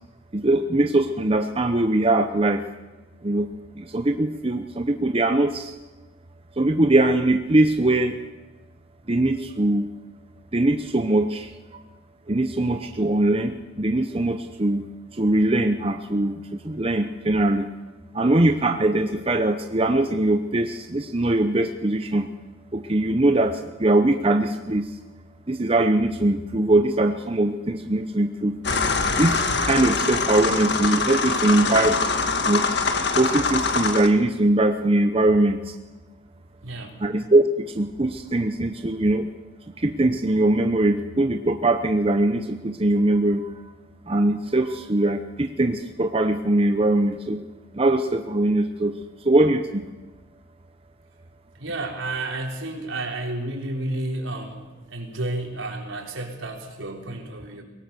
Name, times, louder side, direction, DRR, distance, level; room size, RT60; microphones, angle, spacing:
voice 1, 0.3-2.6 3.2-3.5 3.8-5.7 6.6-8.2 9.1-9.9 10.5-11.5 12.3-14.8 15.2-16.4 16.6-17.7 18.1-22.3 22.7-24.8 25.5-28.5 29.2-32.6 33.2-35.6 37.0-37.4 37.8-39.3 39.8-43.5 44.1-47.4 47.7-48.9 49.2-49.8, right 2 dB, 30° right, 6 dB, 0.8 m, -21 dB
sound 1, 28.6-34.1, left 4 dB, 55° left, 1.6 m, -24 dB
voice 2, 36.6-37.0 51.6-57.6, right 2 dB, 80° right, 1 dB, 4.0 m, -31 dB
23.5 x 18.0 x 6.9 m, 1.2 s
head